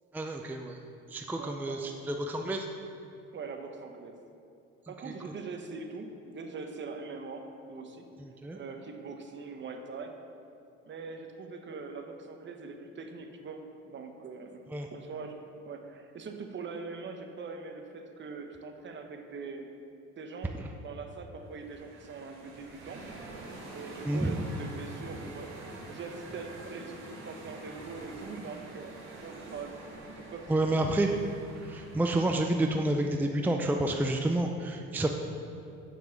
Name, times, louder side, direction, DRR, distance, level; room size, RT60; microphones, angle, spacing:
voice 1, 0.1-0.8 1.1-2.7 5.1-5.2 8.2-8.6 14.7-14.9 24.0-24.4 30.5-31.2 31.6-35.1, right 1 dB, 5° right, 3 dB, 0.5 m, -29 dB
voice 2, 1.4-1.8 3.3-4.2 4.9-8.1 8.5-10.2 10.9-14.6 14.9-15.4 15.6-19.7 20.2-23.0 23.7-29.7 30.2-30.5, right 4 dB, 40° right, 5 dB, 1.0 m, -42 dB
sound 1, 21.4-32.7, right 2 dB, 70° right, 2.3 m, -46 dB
7.0 x 6.0 x 7.0 m, 2.6 s
cardioid pair, 100°, 29 cm